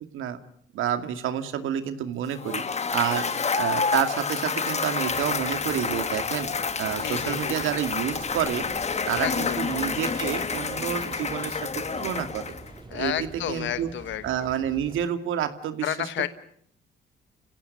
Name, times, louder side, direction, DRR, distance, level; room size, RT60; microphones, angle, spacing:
voice 1, 0.7-3.3 3.6-6.5 6.8-8.7 9.1-12.5 12.9-13.1 13.5-13.9 14.2-15.9, right 10 dB, 85° right, 9 dB, 2.4 m, -29 dB
Cheering / Applause / Crowd, 2.3-12.8, left 5 dB, 35° left, 1.5 m, -29 dB
sound 1, 5.1-15.0, right 2 dB, 25° right, 4.9 m, -44 dB
voice 2, 7.0-7.6 9.2-9.6 12.9-14.5 15.8-16.3, left 11 dB, 70° left, 13 dB, 1.1 m, -31 dB
30.0 x 16.5 x 9.4 m, 0.68 s
cardioid pair, 90°, 20 cm